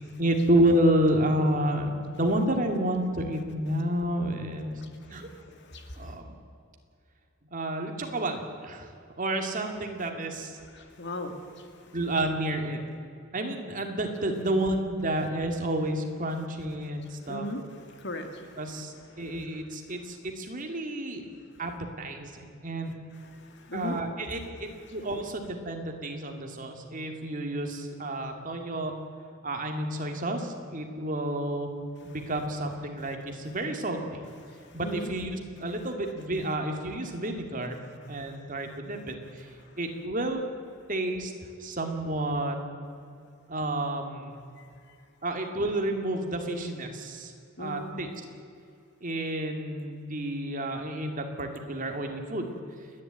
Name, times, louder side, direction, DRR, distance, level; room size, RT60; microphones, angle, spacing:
voice 1, 0.0-4.7 5.1-5.3 6.0-6.3 7.5-8.9 9.2-10.5 11.9-12.8 13.3-17.5 18.6-21.2 21.6-21.7 22.0-22.9 23.7-28.9 29.4-31.7 32.0-34.2 34.7-37.8 38.1-39.5 39.8-40.4 40.9-41.3 41.6-42.6 43.5-44.4 45.2-47.3 47.6-48.1 49.0-52.6, right 1 dB, 40° right, 4 dB, 2.4 m, -30 dB
voice 2, 5.1-6.1 10.7-11.7 17.3-17.6 17.9-18.6 19.1-19.2 23.3-24.0 34.5-35.1 38.1-38.4 47.6-48.0, left 1 dB, 60° left, 5 dB, 2.2 m, -38 dB
29.0 x 11.0 x 9.0 m, 2.4 s
head